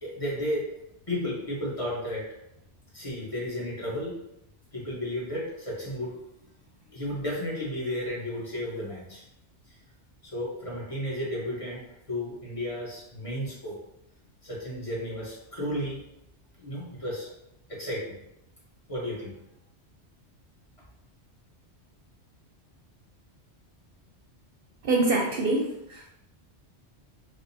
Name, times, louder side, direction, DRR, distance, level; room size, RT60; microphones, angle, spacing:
voice 1, 0.0-0.7 1.1-2.3 2.9-4.1 4.7-6.1 6.9-9.2 10.3-11.8 12.1-13.8 14.4-16.0 16.6-17.3 17.7-18.2 18.9-19.3, left 1 dB, 30° left, -6 dB, 1.0 m, -33 dB
voice 2, 24.8-26.1, right 2 dB, 65° right, 0 dB, 0.7 m, -25 dB
4.8 x 2.0 x 2.7 m, 0.83 s
omnidirectional pair, 1.2 m